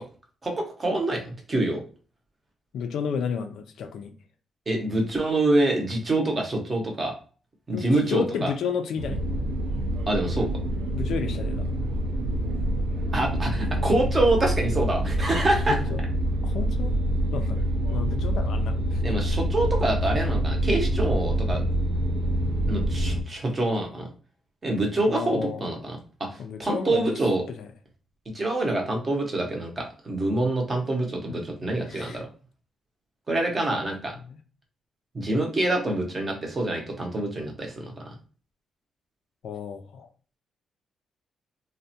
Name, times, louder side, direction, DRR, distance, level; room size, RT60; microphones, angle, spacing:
voice 1, 0.4-1.2 1.5-1.8 4.7-7.1 7.7-8.5 10.1-10.5 13.1-15.8 19.0-21.6 22.7-24.1 24.6-26.3 26.6-27.4 28.3-32.3 33.3-34.1 35.1-37.9, right 2 dB, 20° right, 1 dB, 0.6 m, -26 dB
voice 2, 2.7-4.1 7.7-9.2 10.9-11.7 15.7-16.0 16.4-16.9 17.3-17.6 17.9-19.0 25.1-25.6 26.4-27.2 27.5-27.7 31.3-31.4 31.9-32.2 34.3-34.4 39.4-40.1, left 6 dB, 65° left, 7 dB, 0.3 m, -32 dB
sound 1, 9.0-23.2, right 1 dB, 90° right, 0.4 m, -26 dB
3.3 x 2.1 x 2.6 m, 0.39 s
cardioid pair, 180°, 0 cm